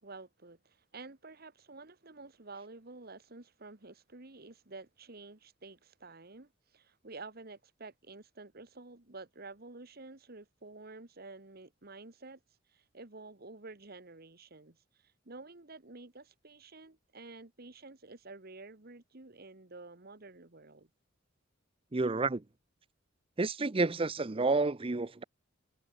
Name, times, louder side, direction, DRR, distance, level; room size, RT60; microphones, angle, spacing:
voice 1, 0.0-12.4 12.7-20.9, right 3 dB, 50° right, 1.7 m, -50 dB
voice 2, 21.9-22.4 23.4-25.2, right 3 dB, 30° right, 0.6 m, -30 dB
head